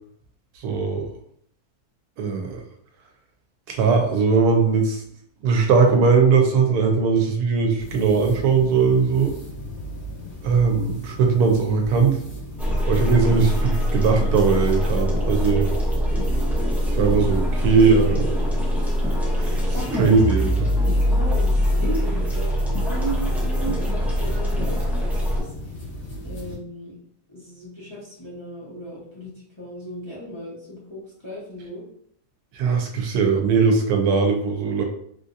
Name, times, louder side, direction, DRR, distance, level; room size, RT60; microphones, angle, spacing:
voice 1, 0.6-1.1 2.2-2.6 3.7-5.0 5.4-9.3 10.4-12.2 12.9-15.7 17.0-18.3 19.4-19.6 19.9-20.7 32.5-34.8, right 5 dB, 85° right, 3 dB, 1.1 m, -19 dB
sound 1, 7.8-26.6, equal, 50° left, 1.3 m, -37 dB
sound 2, 12.6-25.4, equal, ahead, 0.4 m, -23 dB
voice 2, 19.6-20.1 20.9-25.5 26.2-26.9 27.3-31.8, right 1 dB, 25° left, -8 dB, 0.8 m, -35 dB
3.4 x 2.6 x 2.5 m, 0.67 s
omnidirectional pair, 1.6 m